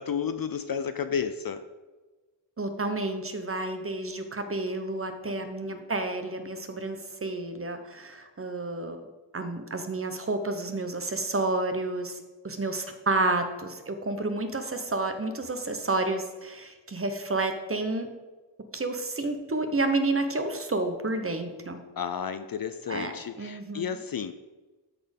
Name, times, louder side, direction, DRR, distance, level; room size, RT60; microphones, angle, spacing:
voice 1, 0.0-1.6 5.3-5.9 22.0-24.3, left 7 dB, 50° left, 10 dB, 0.5 m, -32 dB
voice 2, 2.6-9.0 9.3-18.1 18.7-21.8 22.9-23.1 23.4-23.8, right 2 dB, 30° right, 7 dB, 0.9 m, -30 dB
13.0 x 4.3 x 5.3 m, 1.2 s
wide cardioid pair, 110°, 45 cm